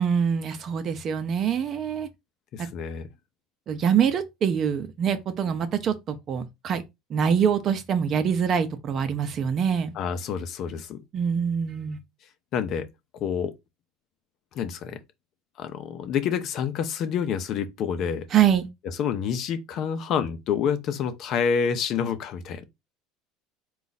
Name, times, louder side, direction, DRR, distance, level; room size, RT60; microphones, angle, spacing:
voice 1, 0.0-2.1 3.7-6.8 7.1-9.9 11.1-12.0 18.3-18.7, right 7 dB, 40° right, 0.7 m, -24 dB
voice 2, 2.5-3.1 9.9-11.0 12.5-12.9 13.2-13.5 14.5-15.0 15.6-18.2 19.0-22.6, left 7 dB, 50° left, 0.7 m, -28 dB
3.9 x 2.4 x 4.0 m
supercardioid pair, 115°, 0 cm